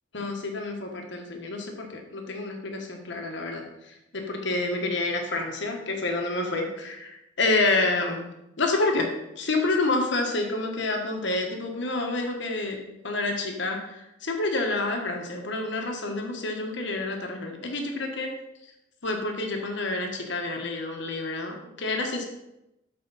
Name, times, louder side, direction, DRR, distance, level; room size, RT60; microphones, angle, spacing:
voice 1, 0.1-8.3 8.6-18.4 19.0-22.3, left 2 dB, 65° left, 2 dB, 1.3 m, -28 dB
12.5 x 4.5 x 4.1 m, 0.89 s
head